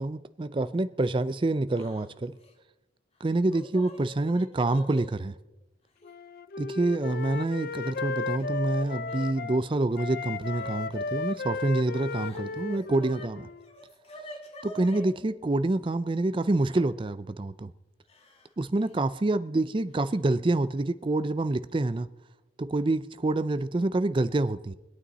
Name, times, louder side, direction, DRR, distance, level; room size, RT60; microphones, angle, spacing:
voice 1, 0.0-2.4 3.2-5.4 6.6-13.5 14.6-17.7 18.6-22.1 22.6-24.7, right 2 dB, 25° right, 0.4 m, -27 dB
Yell / Crying sobbing, 1.7-2.0 2.3-2.5 3.3-5.1 6.0-6.1 7.1-7.7 8.0-9.3 10.5-10.8 11.9-13.3 13.6-15.1 16.7-16.8 18.1-18.5 18.8-18.9 20.1-20.2 20.6-20.9, equal, 30° left, 1.9 m, -47 dB
Wind instrument woodwind instrument, 6.0-9.6 9.9-13.7, left 4 dB, 50° left, 0.5 m, -35 dB
24.5 x 8.8 x 4.1 m
head